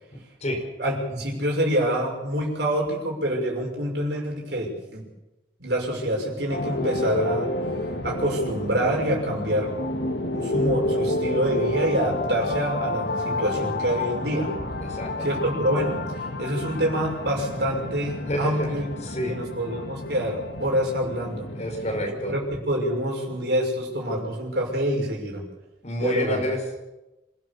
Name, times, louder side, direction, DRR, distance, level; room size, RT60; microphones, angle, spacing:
voice 1, 0.8-5.1 5.6-7.5 8.0-9.8 10.3-14.5 15.2-16.1 16.4-18.9 19.3-21.5 22.1-25.4 26.0-26.4, equal, 60° right, 0 dB, 6.4 m, -26 dB
sound 1, 6.5-22.1, left 1 dB, 65° left, 2.0 m, -30 dB
voice 2, 14.8-15.3 18.2-18.7 19.0-19.4 21.5-22.3 25.8-26.8, equal, 35° left, 1 dB, 5.5 m, -28 dB
27.0 x 16.0 x 7.1 m, 1.0 s
head